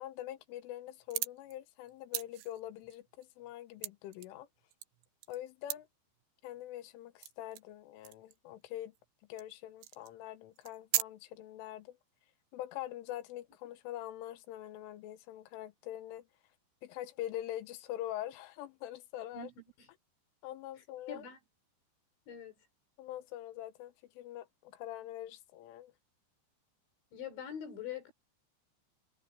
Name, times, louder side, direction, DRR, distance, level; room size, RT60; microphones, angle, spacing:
voice 1, 0.0-4.5 5.3-5.9 6.4-8.9 9.3-12.0 12.5-16.3 16.8-19.5 20.4-21.2 23.0-25.9, left 13 dB, 85° left, 3.7 m, -44 dB
sound 1, 1.0-1.5 1.9-4.3 4.6-5.4 5.7-5.8 6.5-6.6 7.2-7.7 8.0-8.4 8.9-9.1 9.4-9.5 9.8-10.2 10.6-11.0, right 15 dB, 75° right, 2.8 m, -38 dB
voice 2, 21.1-21.4 22.3-22.5 27.1-28.1, left 7 dB, 70° left, 7.0 m, -43 dB
omnidirectional pair, 5.6 m